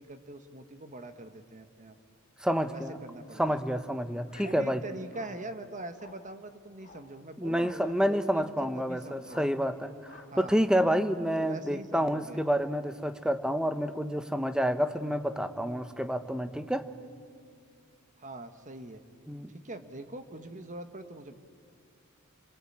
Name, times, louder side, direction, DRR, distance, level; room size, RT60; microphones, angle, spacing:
voice 1, 0.0-2.0 2.7-3.6 4.4-9.5 10.3-10.7 11.4-12.4 18.2-19.0 19.5-21.3, right 1 dB, 35° right, 8 dB, 1.3 m, -43 dB
voice 2, 2.4-3.0 3.4-4.8 7.4-16.9 19.3-19.5, equal, 5° right, 10 dB, 1.0 m, -29 dB
sound 1, 2.5-2.8 3.4-3.7 4.3-4.6 5.1-5.4 5.9-6.3 6.8-7.1 7.5-7.9 8.3-8.7 9.2-9.6 10.0-10.4 10.7-11.1, left 4 dB, 35° left, 3.1 m, -55 dB
29.5 x 22.0 x 8.7 m, 2.2 s
head